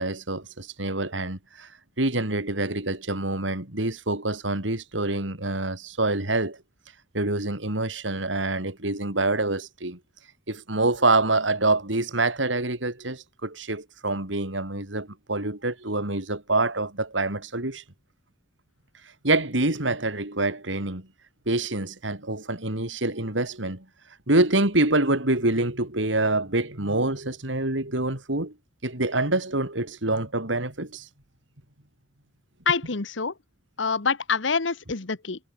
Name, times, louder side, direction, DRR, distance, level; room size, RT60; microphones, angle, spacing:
voice 1, 0.0-1.7 2.0-6.6 7.1-10.0 10.5-17.8 19.2-21.1 21.5-23.8 24.3-28.5 28.8-31.1, right 2 dB, 75° right, 4.2 m, -26 dB
voice 2, 32.7-33.3 33.8-35.4, left 5 dB, 75° left, 1.3 m, -26 dB
head